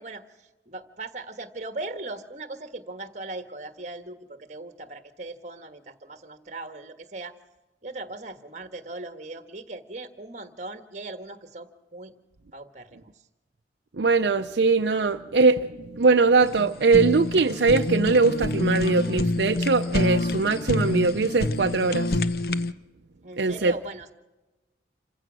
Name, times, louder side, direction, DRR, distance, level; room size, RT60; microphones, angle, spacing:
voice 1, 0.0-7.3 7.8-12.1 12.5-13.1 23.2-24.1, right 2 dB, 40° right, 1.5 m, -39 dB
voice 2, 14.0-22.1 23.4-23.7, right 4 dB, 70° right, 0.6 m, -21 dB
Fire, 16.4-22.7, left 2 dB, 55° left, 0.8 m, -27 dB
27.5 x 16.0 x 6.2 m
head